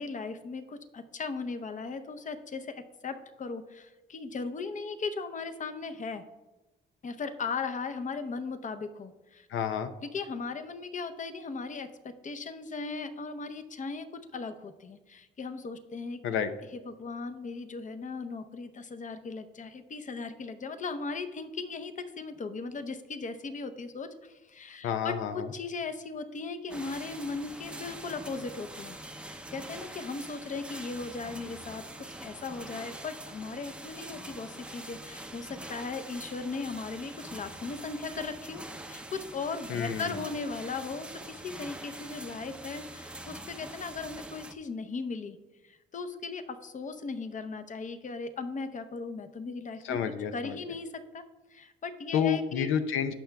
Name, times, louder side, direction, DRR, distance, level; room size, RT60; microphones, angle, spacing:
voice 1, 0.0-6.2 7.0-9.5 10.0-16.2 16.9-29.0 29.2-38.6 38.9-45.4 45.6-50.0 50.3-51.2 51.5-52.7, left 4 dB, 40° left, 9 dB, 0.7 m, -37 dB
voice 2, 9.5-9.9 16.2-16.5 24.8-25.5 39.7-40.2 49.8-50.6 52.1-53.1, left 8 dB, 80° left, 9 dB, 0.6 m, -29 dB
sound 1, 26.7-44.5, right 1 dB, 5° right, 0.6 m, -44 dB
17.0 x 5.9 x 2.3 m, 1.2 s
cardioid pair, 90°, 20 cm